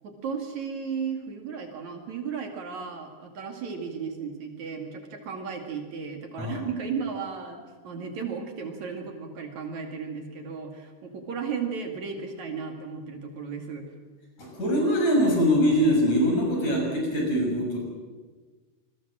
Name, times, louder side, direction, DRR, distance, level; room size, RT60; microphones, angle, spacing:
voice 1, 0.0-13.9, right 6 dB, 60° right, 4 dB, 3.6 m, -35 dB
voice 2, 6.4-6.7 14.4-17.8, equal, 55° left, 1 dB, 7.9 m, -23 dB
26.5 x 20.5 x 7.6 m, 1.3 s
omnidirectional pair, 3.9 m